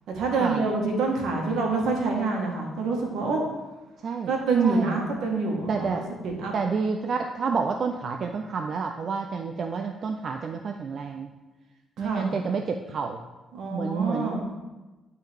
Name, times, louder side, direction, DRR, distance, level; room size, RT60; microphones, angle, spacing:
voice 1, 0.1-3.4 4.3-6.5 12.0-12.3 13.5-14.4, right 3 dB, 80° right, 0 dB, 1.5 m, -26 dB
voice 2, 4.6-5.0 5.7-6.1 6.5-11.3 12.0-13.2 13.7-14.4, right 5 dB, 55° right, 4 dB, 0.4 m, -29 dB
11.5 x 3.9 x 3.5 m, 1.2 s
cardioid pair, 90°, 0 cm